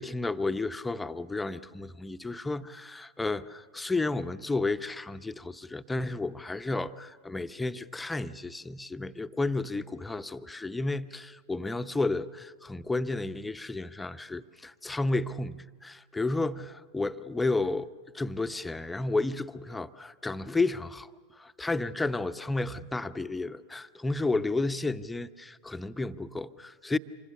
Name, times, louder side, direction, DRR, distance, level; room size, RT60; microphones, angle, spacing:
voice 1, 0.0-17.9 18.1-27.0, left 2 dB, 10° left, 12 dB, 0.7 m, -32 dB
26.5 x 24.5 x 7.1 m, 1.5 s
figure-of-eight pair, 90°, 0 cm